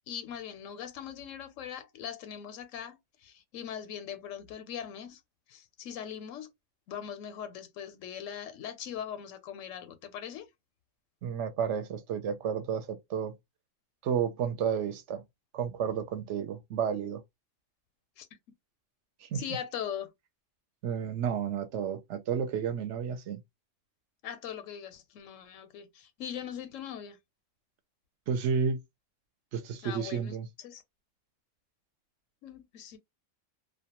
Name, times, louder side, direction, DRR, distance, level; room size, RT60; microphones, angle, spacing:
voice 1, 0.1-5.2 5.5-6.5 6.9-10.5 18.2-18.3 19.3-20.1 24.2-27.2 29.8-30.3 30.6-30.8 32.4-33.0, left 9 dB, 90° left, 1.0 m, -40 dB
voice 2, 11.2-13.3 14.0-15.2 15.5-17.2 19.2-19.4 20.8-23.4 28.3-28.8 29.5-30.5, right 7 dB, 75° right, 0.9 m, -31 dB
2.4 x 2.2 x 2.8 m
omnidirectional pair, 1.3 m